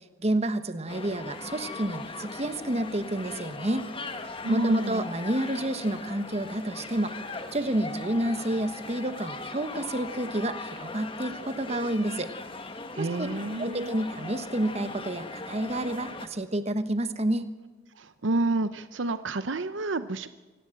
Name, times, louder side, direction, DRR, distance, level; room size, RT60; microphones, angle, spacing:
voice 1, 0.2-3.8 4.5-12.3 13.0-13.3 13.6-17.5, right 1 dB, 30° right, 10 dB, 1.2 m, -29 dB
sound 1, 0.9-16.3, left 3 dB, 25° left, 1.5 m, -39 dB
voice 2, 4.4-5.0 12.9-13.9 18.0-20.3, right 2 dB, 70° right, 12 dB, 0.8 m, -29 dB
25.0 x 18.0 x 7.8 m, 1.2 s
head